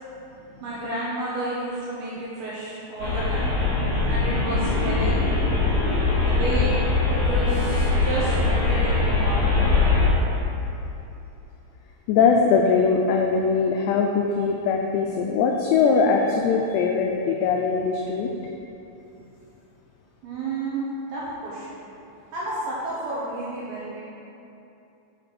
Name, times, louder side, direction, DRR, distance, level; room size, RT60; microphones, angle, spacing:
voice 1, 0.6-3.5 4.1-5.3 6.2-9.5 20.2-21.8 22.3-24.0, right 2 dB, 75° right, -7 dB, 2.3 m, -31 dB
sound 1, 3.0-10.1, left 3 dB, 45° left, 2.2 m, -22 dB
voice 2, 12.1-18.3, left 5 dB, 85° left, 1 dB, 2.4 m, -21 dB
6.8 x 6.1 x 5.8 m, 2.8 s
omnidirectional pair, 5.5 m